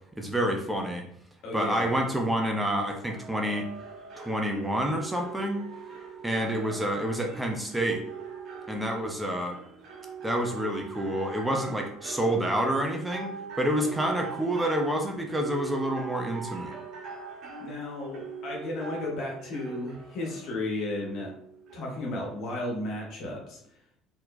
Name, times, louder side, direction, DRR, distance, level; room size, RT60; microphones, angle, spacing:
voice 1, 0.2-1.0 1.5-3.7 4.2-5.6 6.2-8.0 8.7-9.6 10.2-13.3 13.6-16.7, right 1 dB, 10° right, 2 dB, 0.7 m, -28 dB
voice 2, 1.4-1.9 17.6-21.3 21.7-23.6, left 2 dB, 55° left, -1 dB, 1.4 m, -34 dB
sound 1, 3.1-22.7, right 5 dB, 50° right, 1.0 m, -42 dB
4.4 x 3.9 x 2.2 m, 0.65 s
figure-of-eight pair, 60°, 0 cm